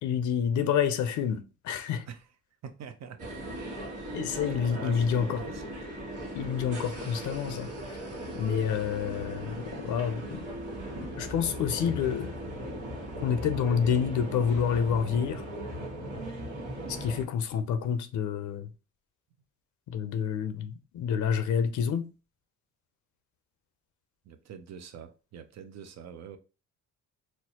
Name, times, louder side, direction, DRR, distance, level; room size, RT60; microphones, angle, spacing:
voice 1, 0.0-2.1 4.1-5.5 6.3-8.0 8.3-10.4 11.2-12.4 13.2-15.4 16.9-18.7 19.9-22.1, left 7 dB, 75° left, 0.5 m, -28 dB
voice 2, 2.6-3.4 4.4-5.6 24.2-26.4, right 7 dB, 60° right, 0.6 m, -44 dB
sound 1, 3.2-17.2, equal, 80° right, 1.3 m, -38 dB
4.3 x 2.0 x 2.8 m
cardioid pair, 90°, 30 cm